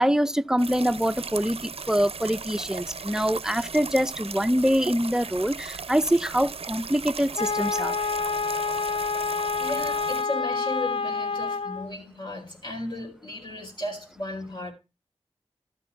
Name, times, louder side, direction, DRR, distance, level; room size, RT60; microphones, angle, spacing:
voice 1, 0.0-8.0, equal, 5° right, 0.5 m, -24 dB
sound 1, 0.6-10.2, right 5 dB, 70° right, 0.5 m, -37 dB
Wind instrument woodwind instrument, 7.4-11.9, left 4 dB, 65° left, 0.5 m, -28 dB
voice 2, 9.6-14.7, left 1 dB, 50° left, 4.6 m, -35 dB
13.0 x 6.0 x 5.6 m
wide cardioid pair, 65°, 10 cm